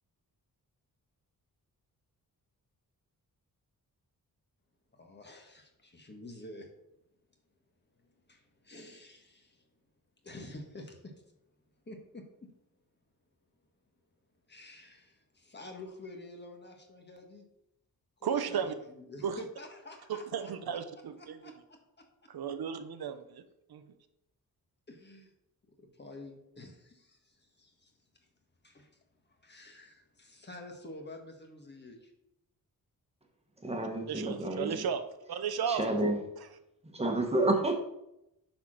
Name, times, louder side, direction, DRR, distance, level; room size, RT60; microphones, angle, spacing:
voice 1, 4.9-6.7 8.0-9.7 10.2-11.2 11.8-12.5 14.5-17.5 18.2-20.8 21.2-21.5 22.0-22.1 24.9-25.3 25.8-27.9 28.2-28.3 28.6-29.0 29.2-32.1, left 1 dB, 30° left, 3 dB, 1.5 m, -49 dB
voice 2, 18.2-18.7 19.2-19.4 20.1-21.4 22.3-23.4 23.7-23.9 34.1-35.8, right 7 dB, 90° right, 9 dB, 0.9 m, -34 dB
voice 3, 33.6-34.8 35.7-36.2 36.9-37.7, right 2 dB, 15° right, 3 dB, 1.4 m, -29 dB
9.4 x 4.4 x 6.4 m, 0.84 s
wide cardioid pair, 165°, 36 cm